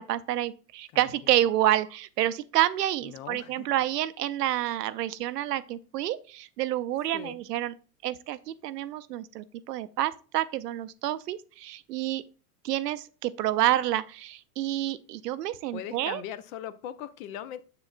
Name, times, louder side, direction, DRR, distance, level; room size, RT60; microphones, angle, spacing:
voice 1, 0.0-7.7 8.0-12.2 12.6-16.2, right 13 dB, 90° right, 0.6 m, -28 dB
voice 2, 0.9-1.4 3.0-3.7 7.1-7.4 15.7-17.6, left 10 dB, 60° left, 0.8 m, -40 dB
7.0 x 6.7 x 2.4 m
hypercardioid pair, 105°, 46 cm